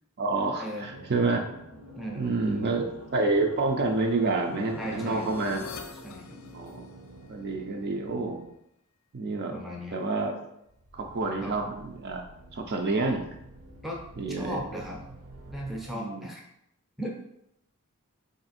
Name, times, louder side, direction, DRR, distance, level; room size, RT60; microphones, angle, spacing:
voice 1, 0.2-1.4 2.2-2.9 3.1-5.6 6.5-6.8 7.3-8.4 9.1-9.5 9.9-10.3 10.9-12.2 12.5-13.2 14.2-14.6 15.9-16.3, right 3 dB, 45° right, 3 dB, 0.4 m, -28 dB
sound 1, 0.8-8.6 10.6-15.9, right 1 dB, 75° right, 0.8 m, -48 dB
voice 2, 1.9-2.8 4.8-5.3 6.0-6.4 9.5-10.0 11.4-11.6 13.8-14.0 14.4-15.0 15.5-16.4 17.0-17.1, equal, ahead, -2 dB, 0.5 m, -37 dB
sound 2, 2.0-7.2, left 3 dB, 65° left, 0.4 m, -44 dB
3.2 x 2.6 x 4.1 m, 0.79 s
head